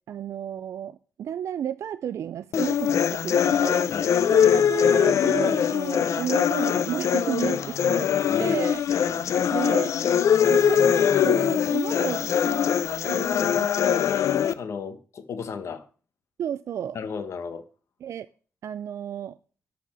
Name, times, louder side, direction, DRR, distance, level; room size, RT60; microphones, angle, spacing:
voice 1, 0.1-3.9 4.3-8.1 8.4-8.8 9.5-9.9 10.5-10.8 11.2-12.7 13.1-13.9 16.4-17.0 18.0-18.3 18.6-19.4, right 9 dB, 75° right, 0.4 m, -32 dB
sound 1, 2.5-14.5, left 8 dB, 90° left, 0.6 m, -22 dB
voice 2, 3.9-4.3 8.3-8.6 8.9-9.3 14.6-15.9 16.9-17.6, left 6 dB, 70° left, 1.0 m, -35 dB
12.0 x 4.2 x 7.4 m
wide cardioid pair, 180°, 5 cm